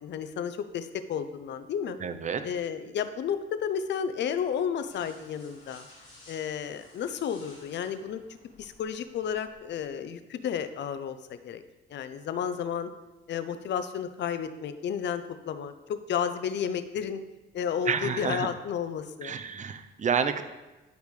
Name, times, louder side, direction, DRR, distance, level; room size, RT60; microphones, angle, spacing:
voice 1, 0.0-2.0 2.4-5.9 6.3-8.2 8.6-11.6 11.9-12.9 13.3-17.2 17.5-19.4, left 8 dB, 65° left, 11 dB, 0.6 m, -32 dB
voice 2, 2.0-2.4 17.9-18.5 19.2-20.4, right 6 dB, 40° right, 9 dB, 0.7 m, -29 dB
sound 1, 4.9-9.9, left 2 dB, 40° left, 2.4 m, -55 dB
10.5 x 5.0 x 3.3 m, 1.1 s
cardioid pair, 90°, 20 cm